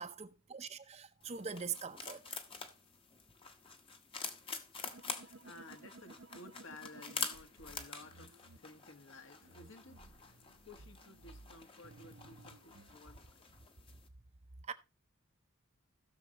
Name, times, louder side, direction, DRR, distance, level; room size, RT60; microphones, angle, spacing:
voice 1, 0.0-2.4 14.6-14.7, right 6 dB, 30° right, 0.7 m, -43 dB
sound 1, 1.2-14.1, left 5 dB, 25° left, 1.0 m, -47 dB
voice 2, 4.7-13.6, left 2 dB, 70° left, 1.6 m, -56 dB
sound 2, 4.9-8.6 9.4-13.0, right 2 dB, 70° right, 0.8 m, -57 dB
16.5 x 6.6 x 3.0 m
head